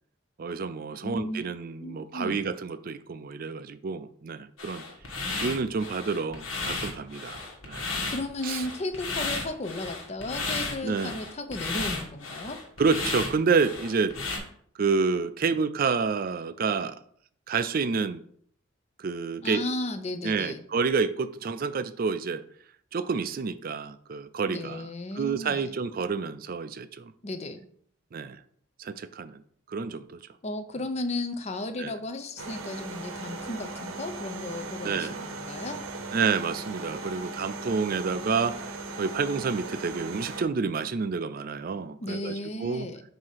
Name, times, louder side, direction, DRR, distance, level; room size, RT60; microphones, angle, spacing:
voice 1, 0.4-4.8 5.4-7.4 7.6-7.9 8.4-8.7 10.8-11.2 12.8-14.2 14.8-17.0 17.5-18.2 19.0-19.6 20.2-22.4 22.9-24.9 25.2-27.1 28.1-28.4 28.8-29.4 29.7-30.2 31.8-31.9 34.8-35.2 36.1-42.3 42.6-42.9, right 5 dB, 45° right, 0.4 m, -29 dB
voice 2, 1.0-2.5 8.1-12.6 19.4-20.6 24.5-25.8 27.2-27.6 30.4-35.8 42.0-43.0, left 2 dB, 30° left, 0.6 m, -35 dB
sound 1, 4.6-14.4, left 3 dB, 70° left, 1.5 m, -34 dB
sound 2, 32.4-40.4, right 3 dB, 80° right, 0.8 m, -38 dB
7.6 x 2.8 x 5.7 m
head